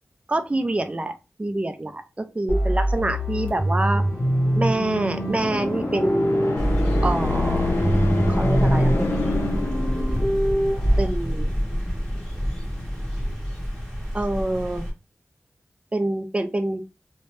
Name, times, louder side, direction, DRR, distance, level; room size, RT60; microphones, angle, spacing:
voice 1, 0.3-1.1 1.4-4.0 4.5-6.5 7.0-7.8 8.3-9.3 11.0-11.5 14.1-14.8 15.9-16.8, right 2 dB, 25° right, 8 dB, 0.4 m, -26 dB
sound 1, 2.5-11.1, right 1 dB, 30° left, 1.0 m, -24 dB
sound 2, 3.6-10.5, left 2 dB, 55° left, 0.6 m, -28 dB
sound 3, 6.6-14.9, equal, 10° left, 1.2 m, -27 dB
2.7 x 2.1 x 3.1 m, 0.28 s
wide cardioid pair, 75°, 5 cm